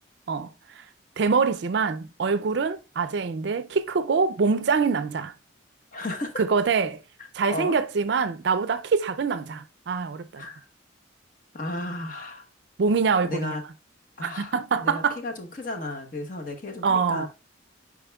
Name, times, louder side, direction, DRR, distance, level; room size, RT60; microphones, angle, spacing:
voice 1, 1.2-5.3 6.4-7.0 7.3-10.5 12.8-13.6 14.2-15.2 16.8-17.3, right 5 dB, 60° right, 0.4 m, -24 dB
voice 2, 5.9-6.4 7.5-7.8 10.4-10.6 11.5-12.4 13.2-13.6 14.2-17.3, left 2 dB, 45° left, 1.0 m, -34 dB
8.7 x 4.9 x 2.3 m
head